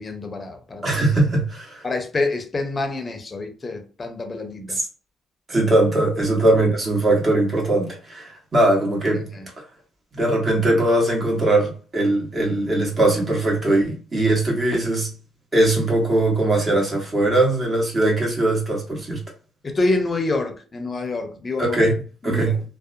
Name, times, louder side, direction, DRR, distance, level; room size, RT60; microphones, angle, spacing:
voice 1, 0.0-0.9 1.8-4.8 6.3-6.4 9.1-9.5 19.6-21.8 22.2-22.5, left 2 dB, 30° left, 0.6 m, -27 dB
voice 2, 0.8-1.8 4.7-4.8 5.5-9.3 10.1-15.1 15.5-19.2 21.6-21.9 22.2-22.6, right 2 dB, 35° right, 1.3 m, -20 dB
2.6 x 2.1 x 2.5 m
cardioid pair, 90°, 0 cm